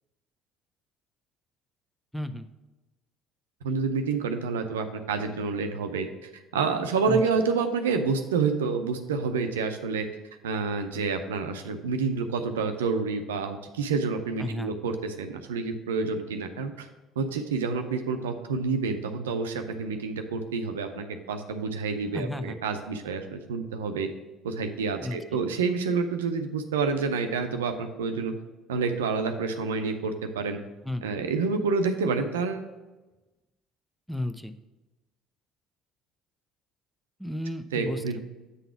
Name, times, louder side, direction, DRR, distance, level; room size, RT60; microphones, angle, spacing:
voice 1, 2.1-2.5 7.1-7.2 14.4-14.7 22.1-22.6 25.0-25.4 30.8-31.1 34.1-34.6 37.2-38.2, left 1 dB, 5° left, 9 dB, 0.5 m, -33 dB
voice 2, 3.6-6.1 6.5-10.1 10.4-16.9 17.2-24.1 24.4-28.3 28.7-30.6 31.0-32.7 37.7-38.2, right 4 dB, 80° right, 7 dB, 0.5 m, -28 dB
8.2 x 3.9 x 5.7 m, 1.1 s
hypercardioid pair, 60°, 0 cm